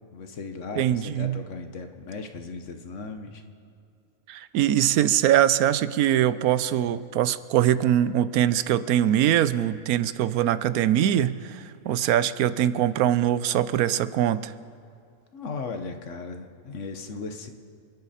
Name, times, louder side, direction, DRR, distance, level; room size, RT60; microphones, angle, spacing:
voice 1, 0.1-3.4 15.3-17.5, left 4 dB, 60° left, 6 dB, 1.3 m, -37 dB
voice 2, 0.8-1.4 4.3-14.5, right 11 dB, 85° right, 15 dB, 1.1 m, -22 dB
28.5 x 10.5 x 4.2 m, 2.4 s
omnidirectional pair, 1.5 m